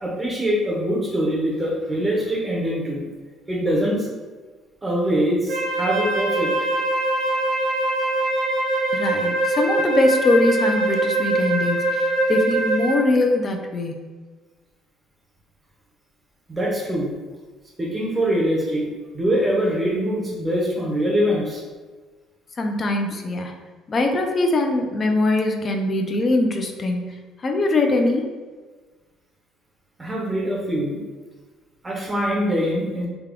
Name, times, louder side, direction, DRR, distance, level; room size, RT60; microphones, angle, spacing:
voice 1, 0.0-3.0 3.5-4.1 4.8-6.5 16.5-17.1 17.8-18.8 19.1-21.6 30.0-31.0 31.8-33.1, equal, 15° right, -3 dB, 0.6 m, -23 dB
Wind instrument woodwind instrument, 5.5-13.1, right 2 dB, 80° right, 0.9 m, -23 dB
voice 2, 8.9-14.1 22.6-23.5 23.9-28.3, left 2 dB, 30° left, 3 dB, 0.4 m, -22 dB
3.4 x 2.2 x 3.6 m, 1.4 s
cardioid pair, 150°, 0 cm